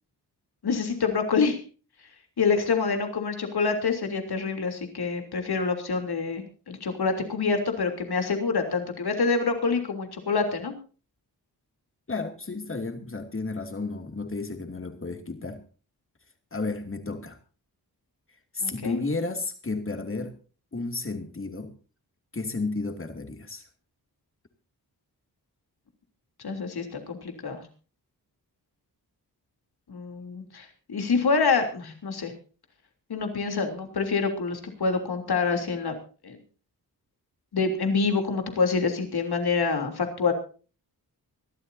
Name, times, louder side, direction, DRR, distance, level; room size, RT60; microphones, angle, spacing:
voice 1, 0.6-1.6 2.4-10.7 18.6-19.0 26.4-27.7 29.9-32.3 33.1-35.9 36.2-36.4 37.5-40.3, left 4 dB, 75° left, 3.3 m, -26 dB
voice 2, 12.1-15.6 16.5-17.4 18.5-20.4 20.7-21.8 22.3-23.6, left 3 dB, 35° left, 2.7 m, -32 dB
24.5 x 12.5 x 2.7 m
wide cardioid pair, 85°, 39 cm